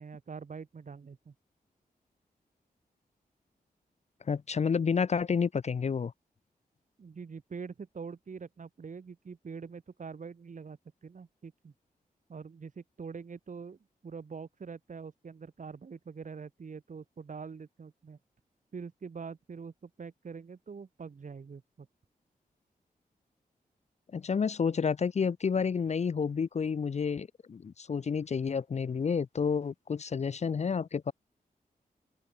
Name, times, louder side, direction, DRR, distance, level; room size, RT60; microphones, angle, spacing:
voice 1, 0.0-1.3 7.0-11.7 12.3-18.2 18.7-21.9, right 5 dB, 55° right, 6.7 m, -44 dB
voice 2, 4.3-6.1 24.1-31.1, left 6 dB, 45° left, 0.7 m, -30 dB
wide cardioid pair, 125°, 16 cm